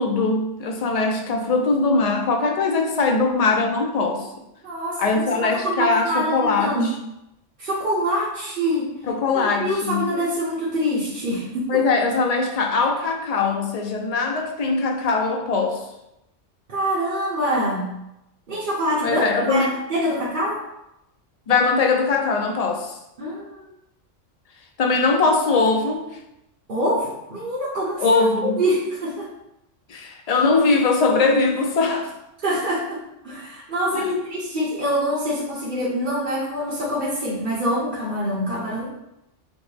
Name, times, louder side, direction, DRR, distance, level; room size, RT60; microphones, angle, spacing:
voice 1, 0.0-4.3 5.0-6.8 9.1-10.1 11.7-15.8 19.0-19.7 21.5-22.9 24.8-26.1 28.0-28.6 29.9-32.1 33.9-34.2, left 3 dB, 60° left, 3 dB, 0.4 m, -21 dB
voice 2, 4.6-6.9 7.6-8.9 9.3-11.7 16.7-17.9 18.5-20.6 23.2-23.7 26.7-28.2 28.6-29.3 32.4-33.0 33.2-38.9, equal, 45° right, -9 dB, 1.0 m, -25 dB
6.1 x 2.0 x 3.3 m, 0.87 s
omnidirectional pair, 1.3 m